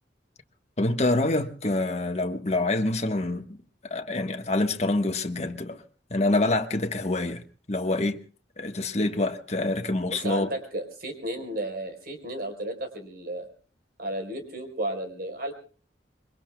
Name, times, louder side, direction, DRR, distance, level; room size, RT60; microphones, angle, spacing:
voice 1, 0.8-3.5 3.9-5.8 6.1-8.2 8.6-10.5, left 2 dB, 40° left, 1.4 m, -26 dB
voice 2, 10.1-13.5 14.0-15.5, right 1 dB, 55° right, 4.4 m, -33 dB
26.5 x 23.0 x 2.3 m
head